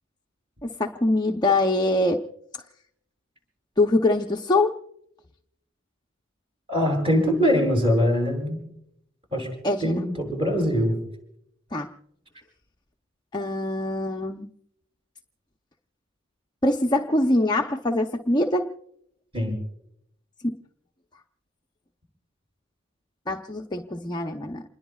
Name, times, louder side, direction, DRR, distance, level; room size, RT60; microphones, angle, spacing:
voice 1, 0.6-2.2 3.8-4.8 9.6-10.0 11.7-11.9 13.3-14.5 16.6-18.7 23.3-24.6, left 2 dB, 20° left, 2 dB, 0.7 m, -23 dB
voice 2, 6.7-8.6 9.3-9.5 9.8-11.0 19.3-19.6, equal, 25° right, 0 dB, 7.6 m, -22 dB
28.0 x 21.0 x 2.3 m, 0.75 s
head